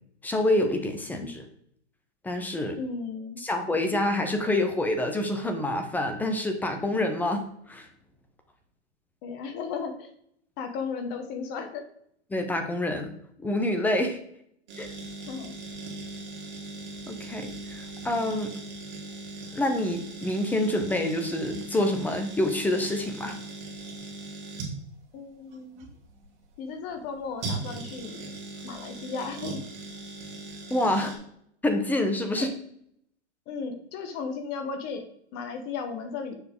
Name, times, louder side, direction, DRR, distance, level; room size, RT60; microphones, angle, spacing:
voice 1, 0.2-1.4 2.2-2.8 3.4-7.9 12.3-14.2 14.8-14.9 17.1-18.5 19.5-23.4 30.7-31.2 31.6-32.5, left 1 dB, 5° left, 5 dB, 0.5 m, -27 dB
voice 2, 2.8-3.4 9.2-10.1 10.6-11.8 15.3-15.5 25.1-25.9 26.6-28.2 28.6-29.6 32.4-32.5 33.5-35.0 35.3-36.3, left 5 dB, 30° left, 6 dB, 1.1 m, -35 dB
sound 1, 14.7-31.2, right 3 dB, 40° right, 2.5 m, -39 dB
7.0 x 5.7 x 3.6 m, 0.69 s
hypercardioid pair, 125°, 35 cm